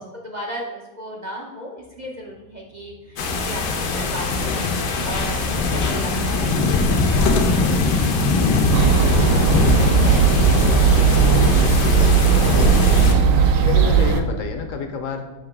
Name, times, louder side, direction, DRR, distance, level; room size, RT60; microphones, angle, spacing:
voice 1, 0.0-9.4 9.8-10.5, equal, 70° right, -1 dB, 0.4 m, -36 dB
sound 1, 1.9-14.4, right 2 dB, 50° right, 0.8 m, -35 dB
sound 2, 3.2-13.1, left 3 dB, 80° left, 1.5 m, -21 dB
sound 3, 8.7-14.2, right 6 dB, 85° right, 1.3 m, -17 dB
voice 2, 11.8-13.2 13.6-15.2, left 5 dB, 65° left, 6 dB, 0.9 m, -30 dB
7.2 x 2.9 x 5.8 m, 1.1 s
omnidirectional pair, 1.9 m